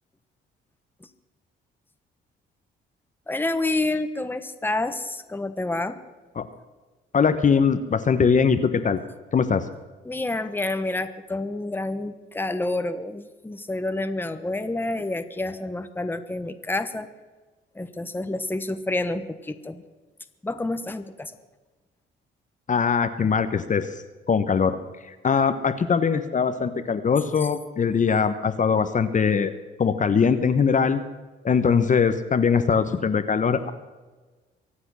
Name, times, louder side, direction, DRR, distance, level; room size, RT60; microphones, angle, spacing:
voice 1, 3.3-6.0 10.0-17.1 17.7-19.8 20.4-21.3, left 2 dB, 10° left, 9 dB, 1.2 m, -28 dB
voice 2, 7.1-9.0 9.3-9.6 22.7-23.9 24.3-24.8 25.1-29.5 29.8-31.0 31.4-33.7, left 6 dB, 40° left, 9 dB, 1.1 m, -21 dB
23.5 x 8.0 x 6.3 m, 1.3 s
cardioid pair, 90°, 20 cm